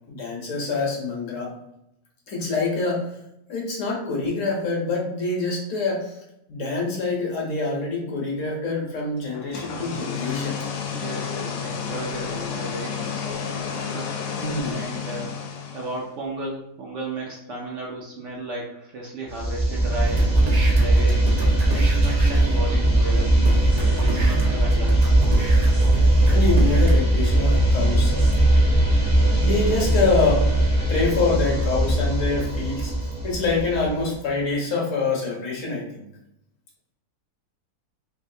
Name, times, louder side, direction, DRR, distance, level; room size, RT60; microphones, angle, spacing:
voice 1, 0.1-1.5 2.3-3.1 3.5-6.2 6.5-10.6 14.3-14.8 26.3-28.4 29.1-30.5 30.9-36.1, left 3 dB, 60° left, -2 dB, 1.1 m, -26 dB
sound 1, 9.3-16.1, left 6 dB, 90° left, 1.1 m, -31 dB
voice 2, 10.9-13.3 13.7-14.3 14.6-15.3 15.7-20.3 20.7-21.4 21.7-25.2, right 2 dB, 65° right, -2 dB, 0.8 m, -34 dB
sound 2, 19.3-34.1, right 1 dB, 20° right, 0.6 m, -19 dB
sound 3, 20.0-22.6 23.2-23.3 23.4-26.9, right 2 dB, 90° right, 0.3 m, -35 dB
3.2 x 2.5 x 2.6 m, 0.82 s
omnidirectional pair, 1.6 m